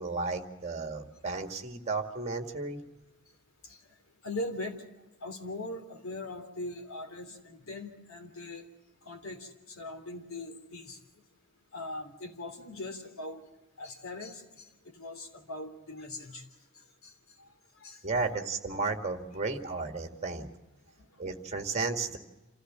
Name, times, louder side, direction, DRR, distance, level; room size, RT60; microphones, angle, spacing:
voice 1, 0.0-2.8 18.0-20.5 21.2-22.2, right 3 dB, 30° right, 6 dB, 2.0 m, -33 dB
voice 2, 4.2-4.8 5.2-8.7 9.0-11.0 11.7-13.5 13.8-16.4 16.7-17.1 17.4-18.0 21.0-21.1, left 2 dB, 80° left, 4 dB, 3.3 m, -41 dB
27.5 x 15.0 x 7.5 m, 1.1 s
head